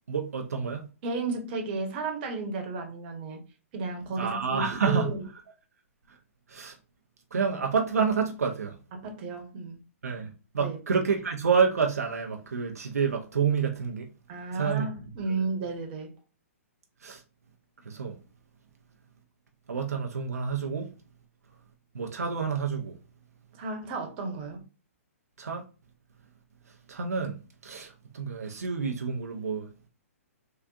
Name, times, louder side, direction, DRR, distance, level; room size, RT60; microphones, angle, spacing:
voice 1, 0.1-0.8 4.2-5.2 6.1-6.2 6.5-6.8 7.3-8.7 10.0-14.1 14.5-14.9 17.0-17.2 17.8-18.2 19.7-20.9 21.9-23.0 25.4-25.6 26.9-29.7, right 6 dB, 85° right, 0.5 m, -28 dB
voice 2, 1.0-3.4 3.7-5.2 8.9-9.8 10.6-10.8 14.3-16.1 23.6-24.6, right 3 dB, 40° right, 1.0 m, -33 dB
3.7 x 2.4 x 2.3 m
hypercardioid pair, 130°, 8 cm